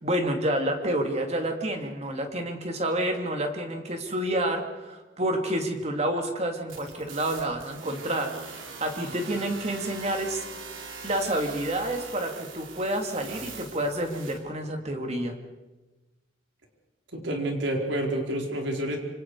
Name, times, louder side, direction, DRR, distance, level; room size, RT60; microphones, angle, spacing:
voice 1, 0.0-10.5 10.8-15.3, right 1 dB, 35° right, 3 dB, 2.8 m, -29 dB
sound 1, 6.7-14.4, right 5 dB, 85° right, 3.5 m, -42 dB
voice 2, 17.1-19.0, right 1 dB, 70° right, 1 dB, 4.5 m, -28 dB
27.0 x 26.0 x 4.9 m, 1.1 s
head